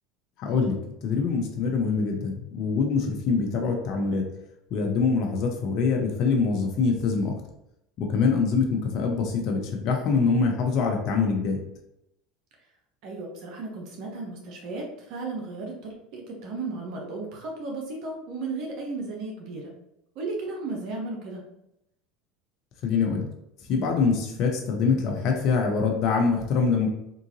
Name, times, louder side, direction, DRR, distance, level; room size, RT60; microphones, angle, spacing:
voice 1, 0.4-0.7 1.0-4.2 4.7-7.3 8.0-11.6 22.8-23.3 23.7-26.9, left 5 dB, 55° left, 2 dB, 0.7 m, -24 dB
voice 2, 13.0-19.6 20.2-21.4, right 3 dB, 60° right, 0 dB, 0.8 m, -34 dB
3.8 x 2.5 x 2.8 m, 0.83 s
hypercardioid pair, 85°, 0 cm